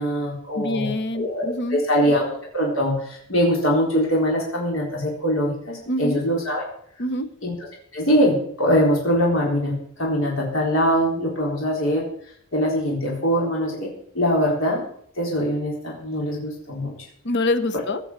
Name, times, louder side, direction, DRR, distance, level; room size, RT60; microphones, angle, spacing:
voice 1, 0.0-6.6 7.4-7.5 7.9-12.1 12.5-14.8 15.2-16.9, equal, 75° left, -2 dB, 4.0 m, -22 dB
voice 2, 0.5-1.8 5.9-6.2 7.0-7.3 17.2-18.0, left 1 dB, 55° left, 12 dB, 1.1 m, -25 dB
17.5 x 6.2 x 8.2 m, 0.65 s
head